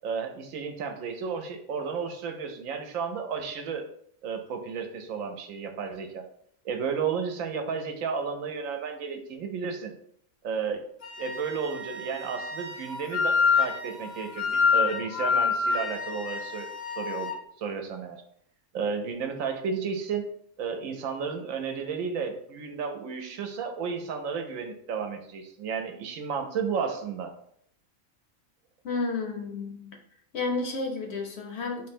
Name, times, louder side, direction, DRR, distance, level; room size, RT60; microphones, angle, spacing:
voice 1, 0.0-3.8 4.2-6.2 6.6-9.9 10.4-10.8 11.2-16.7 17.0-18.2 18.7-20.3 20.6-27.3, right 6 dB, 75° right, 5 dB, 1.0 m, -32 dB
Wind instrument woodwind instrument, 11.0-17.4, left 5 dB, 90° left, 1.4 m, -28 dB
voice 2, 28.8-30.0 30.3-31.9, left 3 dB, 60° left, 3 dB, 0.8 m, -31 dB
3.8 x 2.1 x 4.2 m, 0.67 s
omnidirectional pair, 1.4 m